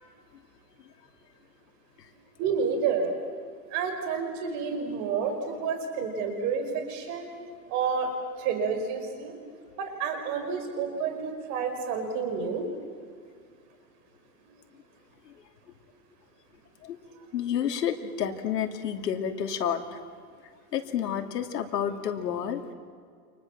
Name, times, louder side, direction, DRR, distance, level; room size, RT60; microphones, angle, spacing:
voice 1, 2.4-3.1 3.7-7.3 7.7-8.1 8.4-9.4 9.8-12.7, right 6 dB, 35° right, 5 dB, 5.2 m, -29 dB
voice 2, 17.3-20.0 20.7-22.6, left 9 dB, 80° left, 6 dB, 2.8 m, -30 dB
30.0 x 27.0 x 7.4 m, 2.1 s
supercardioid pair, 155°, 47 cm